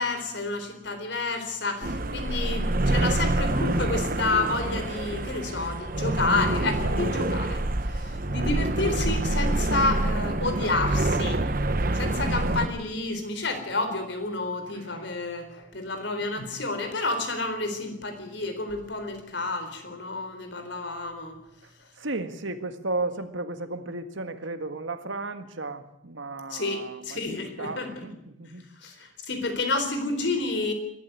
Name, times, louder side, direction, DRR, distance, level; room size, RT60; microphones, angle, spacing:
voice 1, 0.0-11.4 11.9-21.4 26.5-28.1 28.8-30.7, left 3 dB, 65° left, 7 dB, 4.1 m, -30 dB
sound 1, 1.8-12.7, right 2 dB, 45° right, 1.1 m, -26 dB
voice 2, 22.0-28.7, right 2 dB, 75° right, 9 dB, 1.8 m, -34 dB
21.5 x 13.0 x 9.8 m, 0.83 s
head